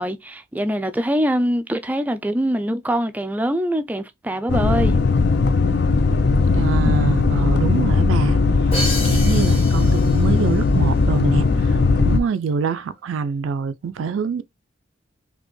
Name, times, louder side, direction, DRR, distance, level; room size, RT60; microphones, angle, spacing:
voice 1, 0.0-5.0, equal, 10° right, 0.3 m, -23 dB
sound 1, 4.5-12.2, left 3 dB, 55° left, 0.4 m, -18 dB
voice 2, 6.5-8.7 9.0-14.4, right 5 dB, 90° right, 0.4 m, -25 dB
Crash cymbal, 8.7-10.6, equal, 30° left, 1.2 m, -29 dB
4.1 x 2.8 x 3.1 m
head